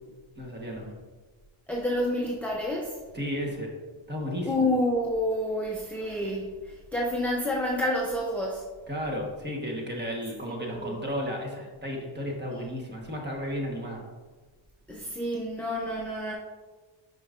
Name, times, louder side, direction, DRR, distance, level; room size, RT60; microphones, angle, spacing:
voice 1, 0.4-0.9 3.1-3.7 4.1-4.5 8.9-14.0, equal, 20° right, 0 dB, 1.1 m, -33 dB
voice 2, 1.7-3.0 4.4-8.7 10.4-11.0 14.9-16.3, left 1 dB, 5° left, -3 dB, 0.5 m, -29 dB
8.5 x 5.4 x 2.4 m, 1.3 s
wide cardioid pair, 155°, 50 cm